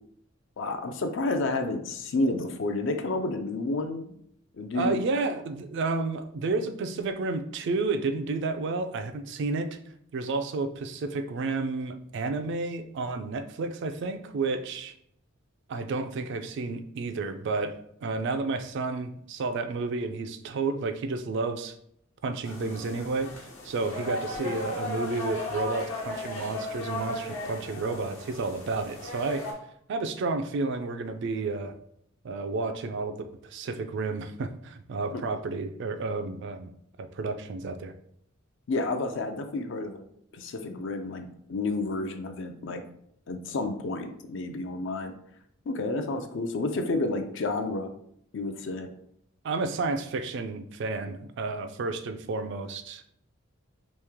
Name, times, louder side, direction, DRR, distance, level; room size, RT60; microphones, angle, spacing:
voice 1, 0.6-4.2 4.6-5.0 35.1-35.2 38.7-40.0 40.3-42.8 43.3-45.1 45.7-47.9 48.3-48.9, left 2 dB, 60° left, 7 dB, 0.4 m, -30 dB
voice 2, 4.7-9.8 10.1-14.9 15.7-17.7 18.0-21.7 22.2-23.4 23.6-29.4 29.9-31.7 32.2-36.7 37.0-37.9 49.4-53.0, right 3 dB, 60° right, 9 dB, 0.3 m, -31 dB
sound 1, 22.4-29.5, left 2 dB, 80° left, 1.1 m, -36 dB
3.1 x 2.8 x 3.5 m, 0.71 s
head